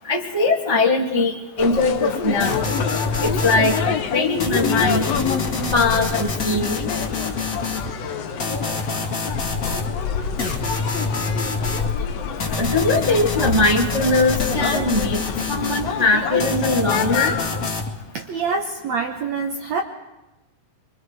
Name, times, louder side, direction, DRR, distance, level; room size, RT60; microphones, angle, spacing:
voice 1, 0.1-1.3 1.6-2.7 3.2-5.0 5.7-6.8 12.6-17.3, left 2 dB, 20° right, -2 dB, 0.8 m, -21 dB
sound 1, 1.6-17.7, left 6 dB, 70° left, 1.6 m, -27 dB
sound 2, 2.4-3.9 4.4-7.9 8.4-9.9 10.4-11.9 12.4-15.9 16.4-17.9, left 4 dB, 30° left, 1.7 m, -27 dB
voice 2, 18.1-19.8, right 4 dB, 65° right, 3 dB, 1.9 m, -25 dB
25.5 x 24.5 x 4.8 m, 1.0 s
omnidirectional pair, 4.2 m